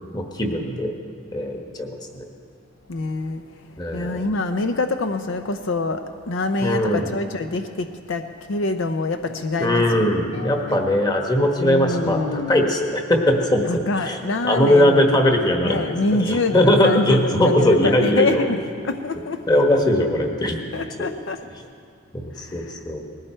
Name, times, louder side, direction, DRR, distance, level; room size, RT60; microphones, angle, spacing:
voice 1, 0.1-0.9 1.3-2.3 3.8-4.3 6.6-7.1 9.6-14.2 14.4-15.9 16.2-18.5 19.5-20.6 21.0-21.1 22.1-23.0, left 1 dB, 20° left, 2 dB, 1.3 m, -20 dB
voice 2, 2.9-3.4 3.9-10.8 11.6-12.7 13.7-15.0 15.6-19.4 19.7-19.8 20.7-21.4 22.4-22.8, left 3 dB, 65° left, 7 dB, 0.6 m, -25 dB
20.0 x 15.5 x 4.5 m, 2.3 s
head